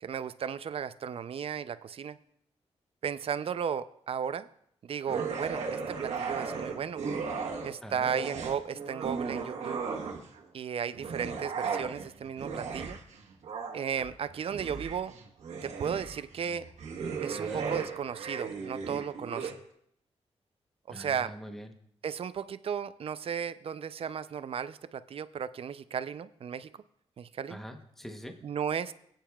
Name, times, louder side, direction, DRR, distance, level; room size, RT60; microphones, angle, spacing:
voice 1, 0.0-2.2 3.0-4.5 4.8-7.0 7.6-9.9 10.5-13.0 13.7-15.1 15.6-16.7 17.2-19.6 20.9-21.3 22.0-26.7 27.2-27.6 28.4-28.9, right 7 dB, 55° right, 15 dB, 0.4 m, -35 dB
sound 1, 5.1-7.7 8.0-10.4 10.9-19.5, right 5 dB, 85° right, 1.2 m, -36 dB
voice 2, 7.8-8.1 17.4-17.7 20.9-21.7 27.5-28.4, equal, 5° left, 5 dB, 0.9 m, -44 dB
18.5 x 9.0 x 2.3 m, 0.68 s
cardioid pair, 100°, 11 cm